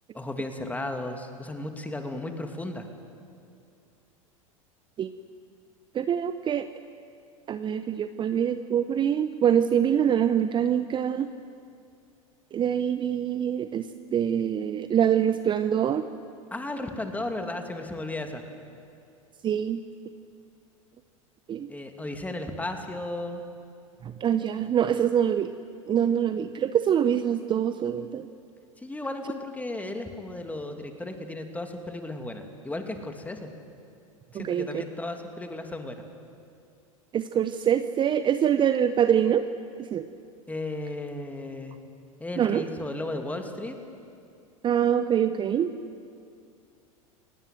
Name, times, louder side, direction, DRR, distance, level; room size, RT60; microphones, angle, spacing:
voice 1, 0.1-2.9 16.5-18.4 21.7-23.4 28.8-33.5 34.3-36.0 40.5-41.8 42.2-43.8, left 2 dB, 10° left, 5 dB, 2.7 m, -35 dB
voice 2, 5.9-6.7 7.5-11.3 12.5-16.0 19.4-19.8 21.5-21.7 24.0-25.5 25.9-28.3 34.3-34.8 37.1-39.5 39.9-40.1 42.4-42.7 44.6-45.7, right 9 dB, 25° right, 11 dB, 0.8 m, -24 dB
29.5 x 18.5 x 7.8 m, 2.4 s
figure-of-eight pair, 90°, 18 cm